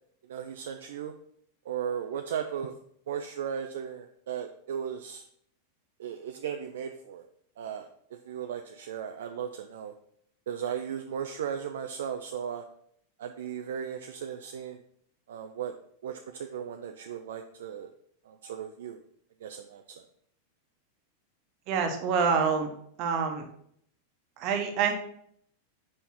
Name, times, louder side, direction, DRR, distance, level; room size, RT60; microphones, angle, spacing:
voice 1, 0.3-1.1 1.7-2.7 3.1-5.2 6.0-7.3 7.6-7.9 8.2-9.9 10.5-12.6 13.2-14.8 15.3-15.7 16.0-17.9 18.3-19.0 19.4-20.0, right 8 dB, 60° right, 6 dB, 0.4 m, -36 dB
voice 2, 21.7-22.7 23.0-23.5 24.4-24.9, right 6 dB, 40° right, 4 dB, 1.2 m, -26 dB
5.5 x 5.4 x 4.3 m, 0.67 s
figure-of-eight pair, 90°, 0 cm